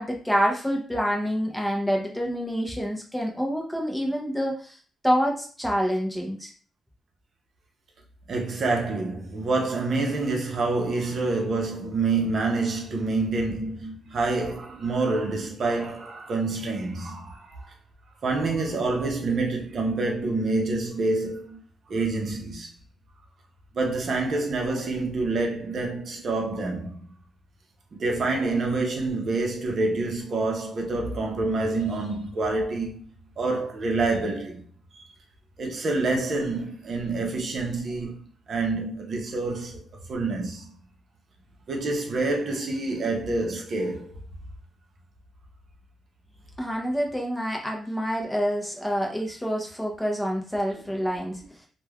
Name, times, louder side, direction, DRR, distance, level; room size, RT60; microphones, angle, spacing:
voice 1, 0.0-4.8 5.0-6.5 46.6-51.4, equal, 5° left, 0.6 m, -27 dB
voice 2, 8.3-17.7 18.2-21.6 21.9-22.7 23.7-27.1 27.9-33.0 33.4-34.6 34.9-35.0 35.6-40.8 41.7-44.1, right 3 dB, 50° right, 0.6 m, -27 dB
3.1 x 2.2 x 2.3 m
cardioid pair, 110°, 0 cm